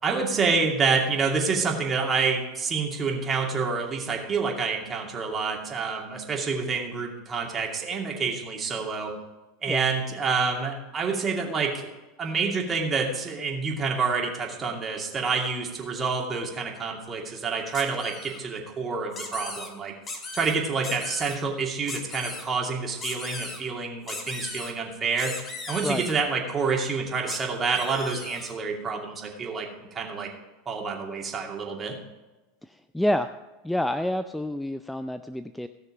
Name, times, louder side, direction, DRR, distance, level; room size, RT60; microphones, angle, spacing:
voice 1, 0.0-9.1 9.6-11.9 12.2-19.9 20.3-25.3 25.7-30.3 30.7-32.0, right 4 dB, 25° right, 0 dB, 2.6 m, -28 dB
sound 1, 17.7-18.4 19.1-19.7 20.0-20.5 20.8-21.4 21.9-22.4 23.0-23.6 24.1-24.7 25.2-26.1 27.3-27.4 27.7-28.5, left 3 dB, 30° left, 2.4 m, -37 dB
voice 2, 32.7-33.3 33.6-35.7, left 1 dB, 5° left, 10 dB, 0.4 m, -28 dB
16.5 x 6.6 x 4.9 m, 1.1 s
hypercardioid pair, 85°, 0 cm